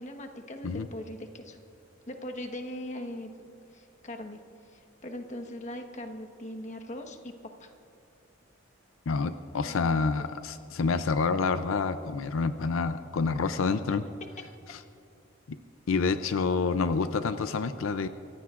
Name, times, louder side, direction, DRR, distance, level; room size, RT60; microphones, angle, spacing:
voice 1, 0.0-1.6 2.0-3.3 3.7-7.3 7.6-7.7 9.6-10.0, left 1 dB, 35° left, 4 dB, 1.3 m, -40 dB
voice 2, 9.1-14.0 14.7-14.8 15.5-15.6 15.9-18.1, left 4 dB, 85° left, 11 dB, 0.5 m, -28 dB
26.5 x 15.5 x 2.5 m, 2.7 s
head